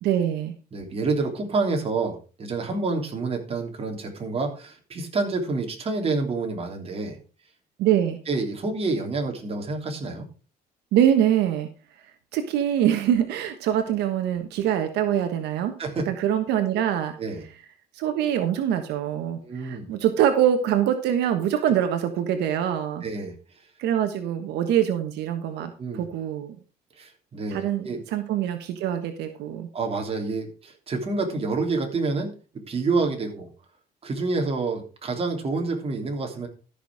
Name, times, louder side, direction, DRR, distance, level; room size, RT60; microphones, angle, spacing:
voice 1, 0.0-0.5 7.8-8.2 10.9-11.7 12.3-15.7 16.1-17.2 17.9-23.0 23.8-26.6 27.5-29.7, right 10 dB, 80° right, 7 dB, 1.3 m, -24 dB
voice 2, 0.7-7.2 8.3-10.3 15.8-16.1 17.2-17.4 19.4-19.9 23.0-23.3 25.6-26.0 27.0-28.0 29.7-32.3 32.7-33.5 34.0-36.5, right 3 dB, 35° right, 2 dB, 3.3 m, -28 dB
13.5 x 6.2 x 4.9 m, 0.35 s
cardioid pair, 110°, 17 cm